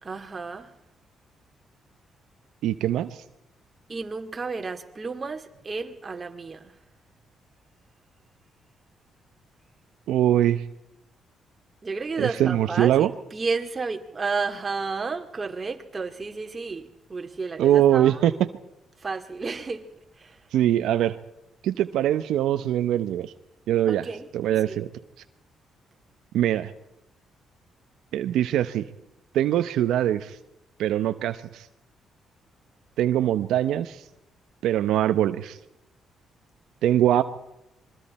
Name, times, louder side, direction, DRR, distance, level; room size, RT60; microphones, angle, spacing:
voice 1, 0.0-0.7 3.9-6.7 11.8-18.2 19.0-19.9 20.2-20.4 23.9-24.3 24.7-24.8, right 4 dB, 30° right, 2.4 m, -32 dB
voice 2, 2.6-3.1 10.1-10.6 12.2-13.1 17.6-18.3 20.5-21.2 21.6-23.3 23.7-24.1 24.3-24.9 26.3-26.7 28.1-28.8 29.3-30.4 30.8-31.7 33.0-34.0 34.6-35.6 36.8-37.2, right 12 dB, 85° right, 0.9 m, -22 dB
26.5 x 23.0 x 4.3 m
cardioid pair, 90°, 0 cm